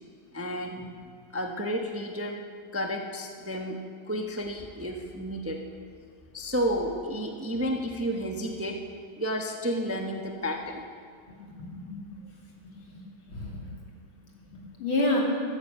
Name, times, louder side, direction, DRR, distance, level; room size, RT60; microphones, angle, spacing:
voice 1, 0.3-0.9 1.3-2.4 2.7-5.6 6.3-8.8 9.2-10.8, equal, 10° right, 3 dB, 0.7 m, -31 dB
voice 2, 11.4-12.1 12.9-13.0 13.3-13.7 14.5-15.2, left 2 dB, 85° left, -2 dB, 3.6 m, -29 dB
14.5 x 13.5 x 6.8 m, 2.2 s
omnidirectional pair, 2.2 m